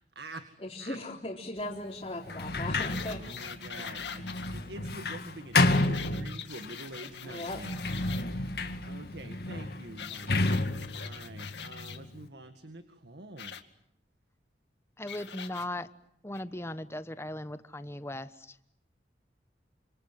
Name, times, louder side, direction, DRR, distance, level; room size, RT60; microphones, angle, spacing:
voice 1, 0.2-0.5 0.8-1.0 2.2-13.6, right 1 dB, 70° right, 8 dB, 2.0 m, -47 dB
voice 2, 0.7-3.2 7.2-7.6, left 1 dB, 30° left, -5 dB, 4.0 m, -38 dB
Sliding door, 2.2-6.8 7.4-12.2, left 2 dB, 60° left, 2.1 m, -31 dB
sound 1, 2.8-4.5 5.5-8.2 10.0-12.0 13.4-13.6 15.1-15.7 16.3-16.4, left 8 dB, 80° left, 2.2 m, -43 dB
voice 3, 15.0-15.9 16.2-18.3, left 1 dB, 15° left, 12 dB, 1.1 m, -37 dB
28.5 x 27.0 x 7.7 m, 0.75 s
head